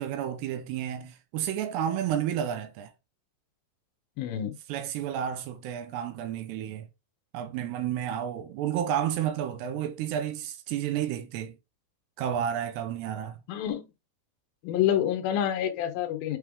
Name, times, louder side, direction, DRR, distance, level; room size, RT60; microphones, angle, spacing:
voice 1, 0.0-2.9 4.7-6.9 7.3-11.6 12.2-13.4, right 10 dB, 85° right, 2.8 m, -31 dB
voice 2, 4.2-4.5 13.5-13.9 14.6-16.4, left 10 dB, 70° left, 2.5 m, -27 dB
8.6 x 3.3 x 3.5 m
omnidirectional pair, 4.9 m